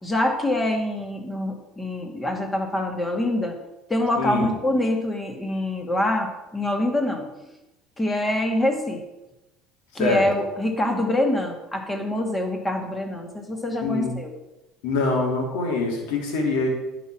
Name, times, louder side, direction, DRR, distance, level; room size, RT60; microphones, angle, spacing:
voice 1, 0.0-3.6 3.9-7.3 8.0-9.0 9.9-14.3, left 1 dB, 15° left, 3 dB, 2.2 m, -25 dB
voice 2, 4.2-4.5 10.0-10.2 13.8-14.1 14.8-16.7, left 3 dB, 65° left, 0 dB, 3.0 m, -24 dB
10.5 x 5.0 x 7.6 m, 0.97 s
hypercardioid pair, 65°, 0 cm